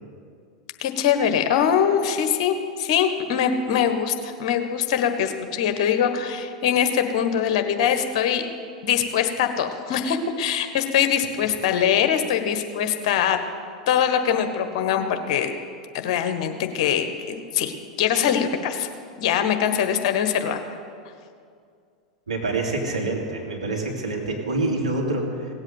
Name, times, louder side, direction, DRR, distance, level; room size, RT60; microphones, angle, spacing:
voice 1, 0.8-8.4 8.8-13.4 13.9-15.5 15.9-18.9 19.2-20.6, left 8 dB, 55° left, 7 dB, 1.3 m, -23 dB
voice 2, 22.3-25.5, right 2 dB, 80° right, -1 dB, 2.6 m, -26 dB
17.5 x 8.0 x 7.8 m, 2.3 s
figure-of-eight pair, 90°, 4 cm